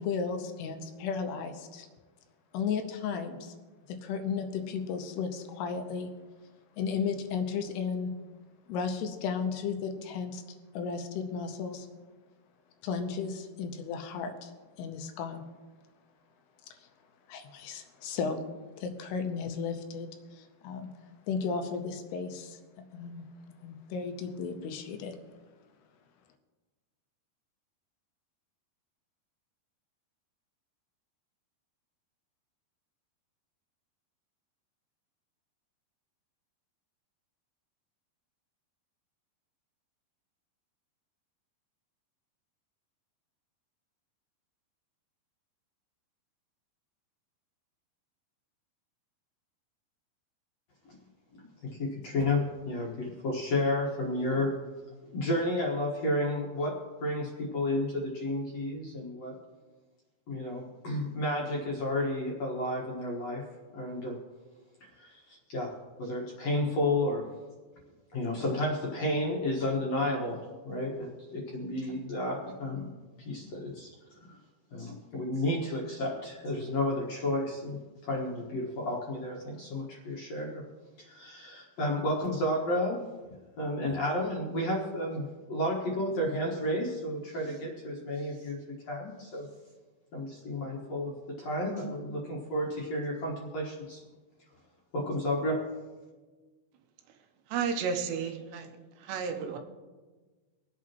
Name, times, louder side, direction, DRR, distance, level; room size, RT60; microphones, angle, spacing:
voice 1, 0.0-1.9 2.5-3.5 3.9-6.1 6.8-8.1 8.7-10.4 10.7-11.9 12.8-14.5 14.8-15.4 16.7-16.9 17.3-18.4 18.8-20.9 21.3-22.6 22.9-23.2 23.6-25.2, left 5 dB, 80° left, 6 dB, 2.8 m, -34 dB
voice 2, 51.3-54.6 55.1-56.8 57.0-59.4 60.3-63.4 63.7-64.2 65.0-67.3 68.1-72.9 73.3-73.9 74.2-74.4 74.7-80.6 81.0-83.1 83.6-88.6 88.9-89.5 90.1-94.0 94.9-95.7, left 1 dB, 55° left, -2 dB, 1.9 m, -32 dB
voice 3, 97.5-98.7 99.0-99.6, right 6 dB, 80° right, 5 dB, 3.1 m, -32 dB
25.0 x 8.4 x 3.0 m, 1.3 s
omnidirectional pair, 4.9 m